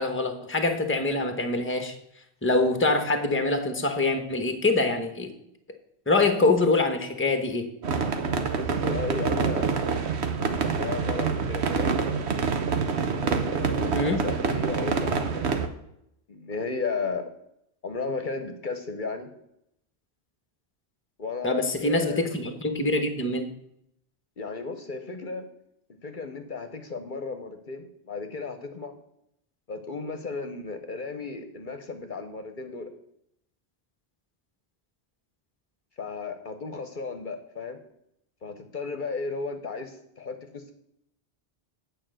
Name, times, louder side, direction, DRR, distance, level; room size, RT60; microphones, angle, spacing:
voice 1, 0.0-1.9 2.4-5.3 6.1-7.7 13.9-14.3 21.4-23.5, left 2 dB, 10° left, 7 dB, 0.9 m, -24 dB
sound 1, 7.8-15.7, right 5 dB, 90° right, 1.2 m, -26 dB
voice 2, 8.5-9.9 10.7-11.9 13.2-15.7 16.3-17.3 17.8-19.3 21.2-22.2 24.4-25.4 26.0-29.0 29.7-32.9 36.0-37.8 38.4-40.7, left 4 dB, 50° left, 7 dB, 0.9 m, -34 dB
8.9 x 4.9 x 7.6 m, 0.78 s
omnidirectional pair, 1.1 m